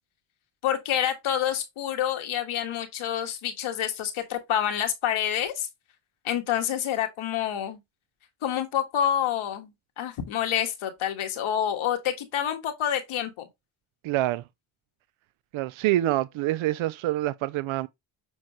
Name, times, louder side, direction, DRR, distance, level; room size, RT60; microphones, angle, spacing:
voice 1, 0.6-5.7 6.2-7.8 8.4-13.5, left 10 dB, 85° left, 1.5 m, -28 dB
voice 2, 14.0-14.4 15.5-17.9, right 15 dB, 75° right, 0.5 m, -26 dB
7.2 x 4.6 x 3.0 m
cardioid pair, 65°, 48 cm